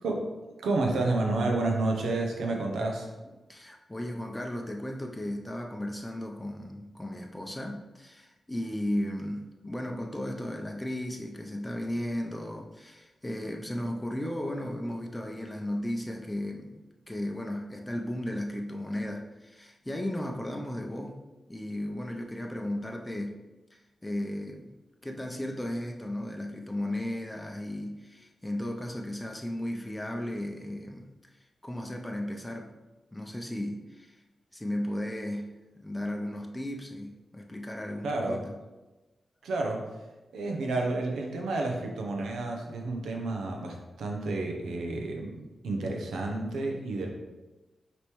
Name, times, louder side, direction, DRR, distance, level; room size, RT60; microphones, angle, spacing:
voice 1, 0.6-3.1 38.0-38.4 39.4-39.9 40.3-47.1, right 2 dB, 90° right, 1 dB, 0.6 m, -30 dB
voice 2, 3.5-21.1 21.5-23.4 23.7-24.7 25.0-31.1 31.6-32.7 33.1-34.2 34.5-38.5 40.4-40.7, left 1 dB, 15° left, 1 dB, 0.5 m, -35 dB
5.1 x 3.0 x 3.1 m, 1.1 s
cardioid pair, 55°, 0 cm